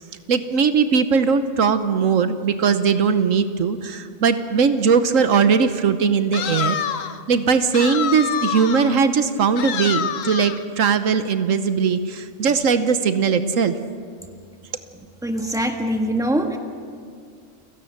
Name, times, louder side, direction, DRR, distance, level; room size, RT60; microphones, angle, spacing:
voice 1, 0.3-6.8 7.3-13.7, right 6 dB, 80° right, 10 dB, 1.3 m, -19 dB
sound 1, 6.3-7.2 7.7-9.0 9.6-10.6, left 8 dB, 80° left, 1.2 m, -27 dB
voice 2, 15.2-16.6, right 1 dB, 5° right, 4 dB, 1.5 m, -23 dB
29.5 x 17.5 x 6.6 m, 2.2 s
omnidirectional pair, 1.4 m